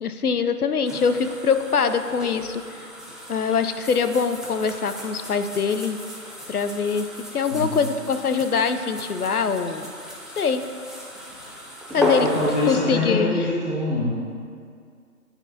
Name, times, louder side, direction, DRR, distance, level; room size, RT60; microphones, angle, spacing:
voice 1, 0.0-2.6 3.3-6.0 6.5-7.1 7.3-9.9 10.4-10.6 11.9-12.3 12.7-13.4, left 5 dB, 70° left, 9 dB, 0.5 m, -23 dB
sound 1, 0.8-12.8, left 1 dB, ahead, 0.4 m, -34 dB
voice 2, 7.5-7.8 11.9-14.1, left 2 dB, 45° left, -5 dB, 1.0 m, -24 dB
9.7 x 4.3 x 2.7 m, 2.2 s
figure-of-eight pair, 160°, 47 cm